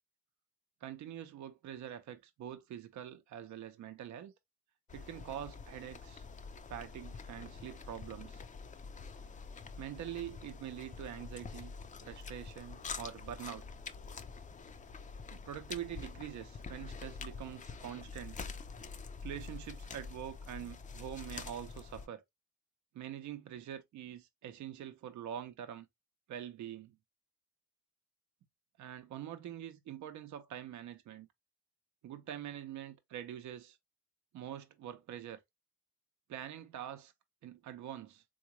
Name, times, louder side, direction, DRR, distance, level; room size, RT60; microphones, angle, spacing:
voice 1, 0.8-4.3 4.9-6.3 6.7-8.4 9.8-11.7 12.0-13.6 15.3-18.4 19.2-22.2 22.9-25.9 26.3-27.0 28.8-31.3 32.0-33.8 34.3-35.4 36.3-37.1 37.4-38.2, right 10 dB, 70° right, 0.7 m, -45 dB
sound 1, 4.9-22.1, left 4 dB, 25° left, 0.5 m, -46 dB
3.7 x 2.3 x 2.9 m
cardioid pair, 90°, 30 cm